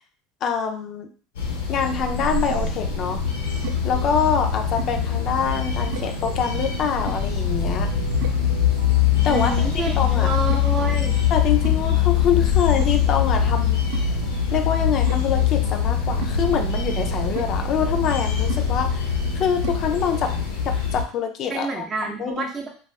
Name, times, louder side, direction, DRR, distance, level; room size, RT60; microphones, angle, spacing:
voice 1, 0.4-1.1 1.7-3.2 3.8-7.9 9.2-10.3 11.3-13.8 14.5-20.3 20.6-21.8 22.2-22.5, left 7 dB, 50° left, 4 dB, 0.4 m, -25 dB
sound 1, 1.3-21.0, left 8 dB, 85° left, 0.7 m, -23 dB
sound 2, 1.9-20.7, right 7 dB, 80° right, 0.4 m, -36 dB
voice 2, 9.3-11.1 21.5-22.7, right 3 dB, 35° right, 0 dB, 0.6 m, -28 dB
2.3 x 2.3 x 3.2 m, 0.43 s
hypercardioid pair, 85°, 0 cm